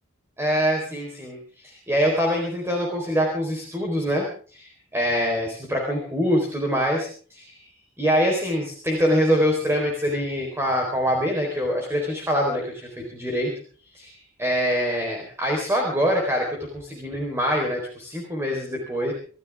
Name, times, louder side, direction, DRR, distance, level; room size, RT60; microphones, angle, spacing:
voice 1, 0.4-4.3 4.5-7.7 8.0-13.5 13.9-19.1, equal, 10° right, 0 dB, 4.2 m, -24 dB
27.0 x 14.0 x 3.6 m, 0.42 s
head